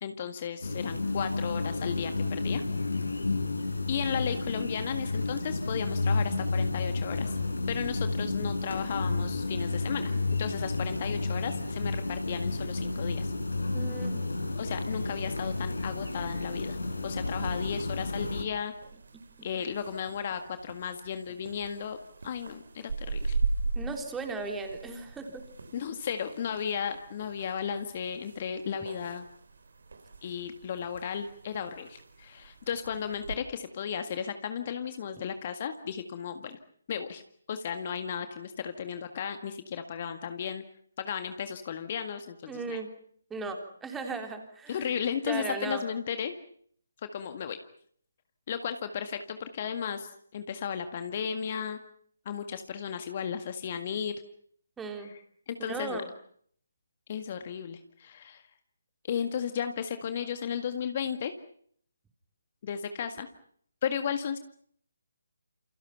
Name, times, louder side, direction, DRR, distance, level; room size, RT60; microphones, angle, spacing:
voice 1, 0.0-2.6 3.9-7.4 7.7-10.1 10.4-13.3 14.6-16.8 17.0-18.7 19.4-22.0 22.2-23.4 25.7-29.3 30.2-36.6 36.9-37.2 37.5-40.6 41.0-42.8 44.7-46.4 47.1-47.6 48.5-51.8 52.3-54.1 55.0-55.2 55.5-56.0 57.1-58.4 59.1-61.3 62.6-63.3 63.8-64.4, left 7 dB, 35° left, 8 dB, 1.8 m, -34 dB
sound 1, 0.6-18.4, left 3 dB, 70° left, 5.1 m, -31 dB
voice 2, 13.7-14.2 23.8-25.5 42.5-42.9 43.3-44.9 45.3-45.8 54.8-55.1 55.7-56.1, right 4 dB, 5° right, 4 dB, 3.5 m, -36 dB
sound 2, 18.0-33.4, right 3 dB, 55° right, 3.5 m, -39 dB
29.0 x 28.5 x 5.8 m, 0.63 s
figure-of-eight pair, 145°, 0 cm